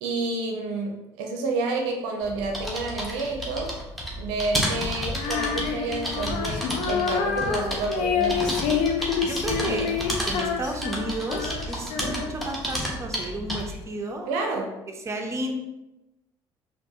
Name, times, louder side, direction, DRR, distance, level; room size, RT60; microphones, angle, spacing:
voice 1, 0.0-3.8 4.2-8.5 9.6-9.9 11.9-12.2 14.3-14.8, right 3 dB, 70° right, 2 dB, 0.5 m, -30 dB
sound 1, 2.2-13.8, equal, ahead, 1.1 m, -31 dB
Female singing, 5.1-12.5, left 7 dB, 60° left, 0.5 m, -28 dB
voice 2, 9.2-9.9 10.3-14.3 15.0-15.5, right 1 dB, 20° right, 2 dB, 0.7 m, -32 dB
4.4 x 2.5 x 2.7 m, 0.97 s
hypercardioid pair, 55°, 14 cm